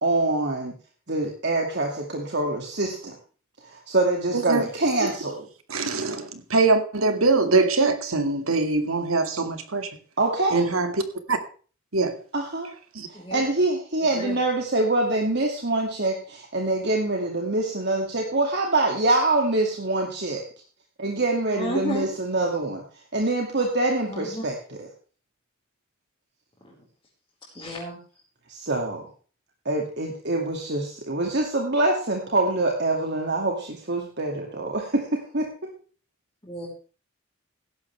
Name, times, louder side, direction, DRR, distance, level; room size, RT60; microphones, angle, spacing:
voice 1, 0.0-0.7 1.1-3.2 3.6-5.5 10.2-10.7 12.3-12.7 13.1-20.4 21.0-22.8 23.1-24.5 28.5-29.0 29.7-35.5, right 2 dB, 55° right, 2.4 m, -25 dB
voice 2, 5.7-9.9 10.5-10.9 11.3-11.4 11.9-12.2 13.0-13.1, right 3 dB, 90° right, 2.2 m, -23 dB
voice 3, 14.0-14.4 21.5-22.1 24.1-24.4 26.6-26.8 27.5-28.0 36.4-36.8, equal, 20° left, 5.0 m, -33 dB
16.5 x 12.0 x 3.4 m
head